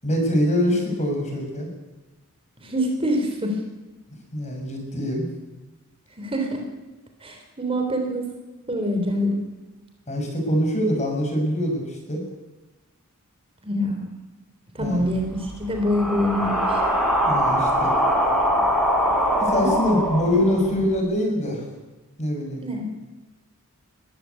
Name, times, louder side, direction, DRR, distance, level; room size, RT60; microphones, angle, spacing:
voice 1, 0.0-1.7 4.3-5.3 10.1-12.3 14.8-15.1 17.2-17.9 19.4-21.7 22.2-22.6, equal, 30° left, 2 dB, 6.7 m, -24 dB
voice 2, 2.6-3.6 6.2-6.7 7.2-8.3 8.7-9.4 13.6-14.1 14.7-16.8 19.6-20.0 20.3-20.7 22.6-22.9, equal, 25° right, 4 dB, 3.4 m, -25 dB
sound 1, 14.8-20.9, equal, ahead, 5.3 m, -23 dB
22.5 x 15.0 x 8.4 m, 1.1 s
head